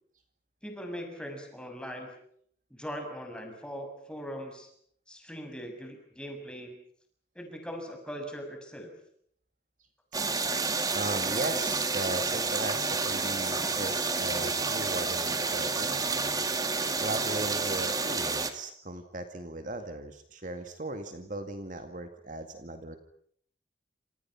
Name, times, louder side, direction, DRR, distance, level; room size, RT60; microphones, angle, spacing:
voice 1, 0.6-2.1 2.7-4.7 5.1-6.8 7.3-8.9, equal, 5° left, 3 dB, 6.6 m, -40 dB
sound 1, 10.1-18.5, right 4 dB, 20° right, 2.1 m, -30 dB
voice 2, 10.9-16.3 17.0-23.0, right 2 dB, 45° right, 7 dB, 2.1 m, -37 dB
28.5 x 27.5 x 5.9 m, 0.64 s
head